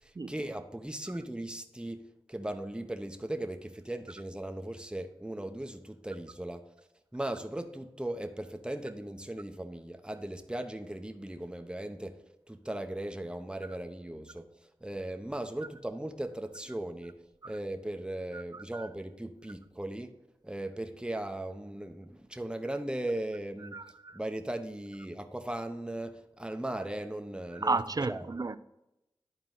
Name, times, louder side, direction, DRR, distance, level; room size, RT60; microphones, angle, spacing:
voice 1, 0.0-6.7 7.1-12.2 12.5-14.5 14.8-17.2 17.4-20.1 20.4-23.8 24.1-28.2, right 1 dB, 10° right, 0.9 m, -38 dB
voice 2, 18.3-18.9 23.7-24.2 27.5-28.6, right 3 dB, 40° right, 0.5 m, -33 dB
11.0 x 4.4 x 3.9 m
cardioid pair, 40°, 10 cm